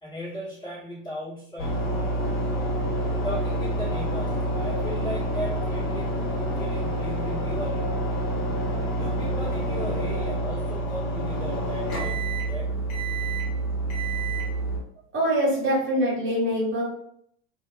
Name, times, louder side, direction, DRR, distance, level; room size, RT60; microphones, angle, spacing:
voice 1, 0.0-1.9 3.2-6.2 6.6-8.0 9.0-12.2 12.4-12.8 15.5-15.6, equal, 15° left, -8 dB, 1.3 m, -36 dB
sound 1, 1.6-14.8, right 1 dB, 55° left, 1.1 m, -27 dB
voice 2, 15.1-16.8, equal, 40° right, -4 dB, 1.0 m, -24 dB
2.5 x 2.3 x 2.2 m, 0.69 s
hypercardioid pair, 90°, 32 cm